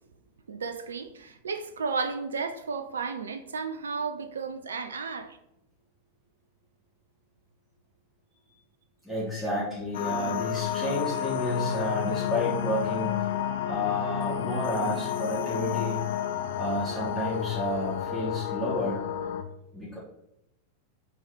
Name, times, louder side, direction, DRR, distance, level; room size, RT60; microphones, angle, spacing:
voice 1, 0.5-5.4, right 5 dB, 70° right, 0.4 m, -33 dB
voice 2, 9.0-13.3 13.6-16.0 16.6-19.0 19.7-20.0, equal, 5° right, 2.6 m, -31 dB
sound 1, 9.9-19.4, left 10 dB, 55° left, 0.5 m, -30 dB
6.3 x 4.3 x 4.2 m
figure-of-eight pair, 90°, 0 cm